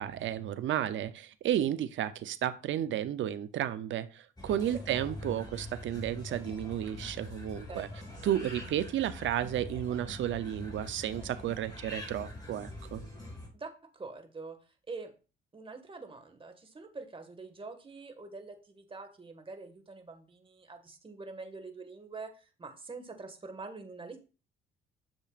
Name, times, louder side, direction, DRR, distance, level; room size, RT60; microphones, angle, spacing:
voice 1, 0.0-7.9 8.2-13.0, right 11 dB, 70° right, 0.7 m, -32 dB
sound 1, 4.4-13.5, left 1 dB, 20° left, 5.0 m, -44 dB
voice 2, 13.5-14.6 14.9-15.1 15.5-24.2, right 3 dB, 25° right, 1.8 m, -45 dB
10.5 x 6.9 x 2.5 m
cardioid pair, 90°, 20 cm